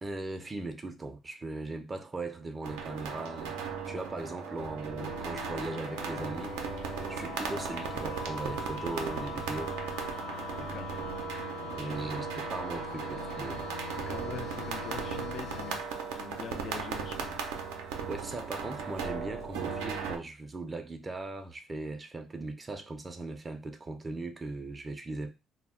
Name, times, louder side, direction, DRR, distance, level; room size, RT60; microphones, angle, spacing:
voice 1, 0.0-3.6 3.9-6.6 7.1-9.7 11.6-13.6 18.1-25.3, right 2 dB, 30° right, 0.4 m, -39 dB
sound 1, 2.6-20.2, right 6 dB, 85° right, 0.4 m, -37 dB
sound 2, 5.0-15.8, left 5 dB, 85° left, 0.8 m, -42 dB
voice 2, 10.6-11.0 14.1-15.8 16.2-17.4, left 7 dB, 60° left, 0.3 m, -43 dB
2.1 x 2.1 x 3.6 m
supercardioid pair, 70°, 0 cm